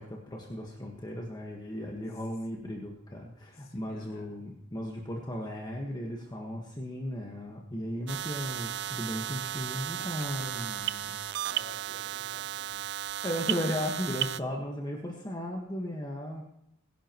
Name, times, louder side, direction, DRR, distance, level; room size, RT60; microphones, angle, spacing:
voice 1, 0.0-11.1 13.2-16.4, left 1 dB, 20° left, -1 dB, 1.5 m, -36 dB
voice 2, 3.5-4.4 9.4-9.5 10.0-10.7 11.0-12.9, left 2 dB, 50° left, 0 dB, 2.6 m, -52 dB
sound 1, 8.1-14.4, right 12 dB, 60° right, 0.4 m, -34 dB
22.0 x 11.0 x 3.1 m, 0.75 s
head